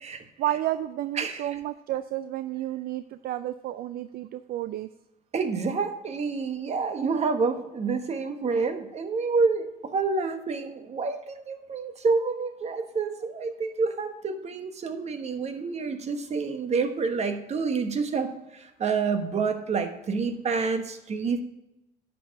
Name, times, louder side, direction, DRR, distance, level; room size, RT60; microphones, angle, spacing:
voice 1, 0.4-4.9, right 13 dB, 65° right, 13 dB, 0.4 m, -31 dB
voice 2, 1.2-1.5 5.3-18.3 18.5-21.4, right 4 dB, 40° right, 8 dB, 1.2 m, -28 dB
11.0 x 5.4 x 5.8 m, 0.90 s
cardioid pair, 110°, 17 cm